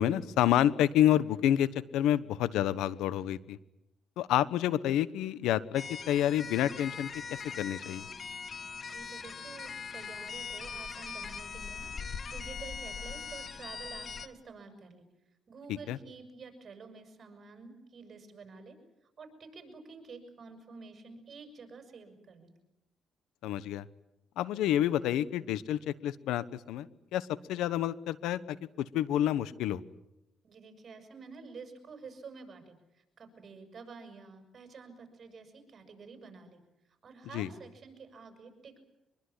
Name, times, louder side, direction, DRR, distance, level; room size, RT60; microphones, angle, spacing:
voice 1, 0.0-1.7 1.9-3.6 4.2-8.0 15.9-16.0 23.4-23.9 24.4-29.8 37.3-37.5, left 11 dB, 90° left, 17 dB, 1.1 m, -29 dB
sound 1, 5.7-14.3, left 5 dB, 40° left, 1.7 m, -41 dB
voice 2, 8.9-15.0 15.5-18.8 19.2-22.5 30.4-36.6 37.0-38.8, right 4 dB, 50° right, 7 dB, 6.9 m, -49 dB
24.5 x 22.5 x 9.9 m, 0.87 s
cardioid pair, 90°, 0 cm